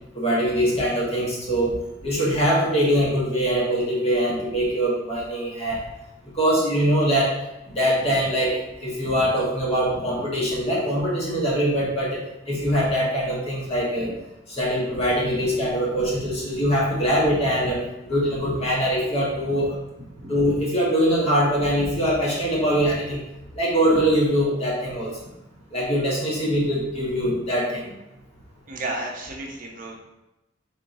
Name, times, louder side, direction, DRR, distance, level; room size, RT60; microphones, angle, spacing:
voice 1, 0.1-1.7 2.0-5.8 6.3-7.4 7.7-12.2 12.5-14.1 14.5-19.7 20.3-23.2 23.5-25.1 25.7-27.8, equal, 30° left, -5 dB, 1.2 m, -23 dB
voice 2, 20.2-20.5 28.7-30.0, right 2 dB, 45° right, 0 dB, 0.7 m, -33 dB
4.4 x 3.7 x 2.6 m, 0.94 s
head